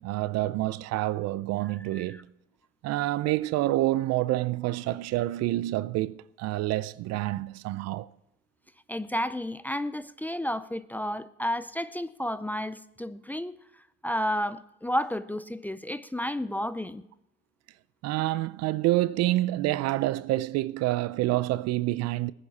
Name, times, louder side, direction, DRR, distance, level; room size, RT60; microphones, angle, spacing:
voice 1, 0.0-2.2 2.8-8.1 18.0-22.3, right 16 dB, 60° right, 0.6 m, -27 dB
voice 2, 1.9-2.2 8.9-13.5 14.0-17.0, left 1 dB, 5° left, 0.5 m, -31 dB
18.0 x 10.0 x 4.2 m
supercardioid pair, 85°, 30 cm